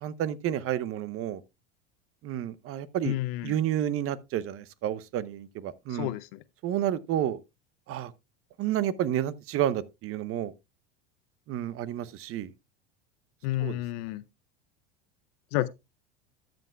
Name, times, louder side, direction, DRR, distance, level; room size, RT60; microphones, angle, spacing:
voice 1, 0.0-1.4 2.2-3.1 3.4-6.1 6.6-7.4 7.9-8.1 8.6-10.5 11.5-12.5 13.6-13.8, right 11 dB, 45° right, 0.8 m, -30 dB
voice 2, 3.0-3.5 5.9-6.4 13.4-14.2 15.5-15.7, left 16 dB, 65° left, 0.6 m, -30 dB
13.0 x 7.8 x 2.3 m
hypercardioid pair, 95°, 32 cm